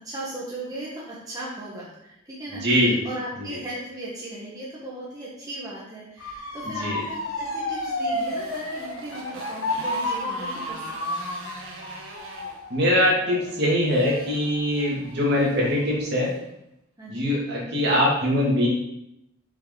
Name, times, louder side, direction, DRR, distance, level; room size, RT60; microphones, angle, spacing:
voice 1, 0.0-11.1 17.0-17.3, right 1 dB, 15° right, -7 dB, 1.3 m, -37 dB
voice 2, 2.6-3.0 3.4-3.6 6.6-7.0 12.7-16.3 17.1-18.7, left 1 dB, 50° right, -5 dB, 2.4 m, -22 dB
Motor vehicle (road) / Siren, 6.2-15.1 15.5-16.0, left 1 dB, 75° left, 1.3 m, -31 dB
Motorcycle, 7.0-16.4, right 2 dB, 70° right, 1.4 m, -43 dB
6.9 x 5.4 x 3.9 m, 0.81 s
head